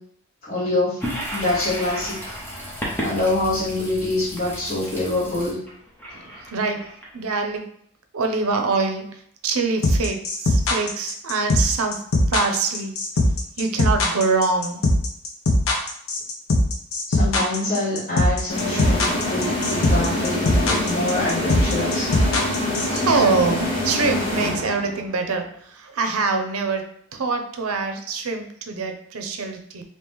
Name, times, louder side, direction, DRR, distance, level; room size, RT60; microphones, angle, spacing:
voice 1, 0.5-1.0 1.3-2.4 3.0-5.6 17.1-22.1, left 2 dB, 40° left, -13 dB, 1.2 m, -25 dB
Toilet flush, 1.0-7.5, equal, 10° left, 0.8 m, -33 dB
voice 2, 6.1-6.9 7.1-7.7 8.1-12.9 13.6-14.8 22.8-26.8 27.1-29.8, right 4 dB, 85° right, 5 dB, 0.6 m, -24 dB
sound 1, 9.8-23.0, left 1 dB, 75° left, 0.7 m, -20 dB
sound 2, 18.5-25.1, left 1 dB, 25° left, 1.1 m, -25 dB
3.0 x 2.9 x 3.4 m, 0.68 s
head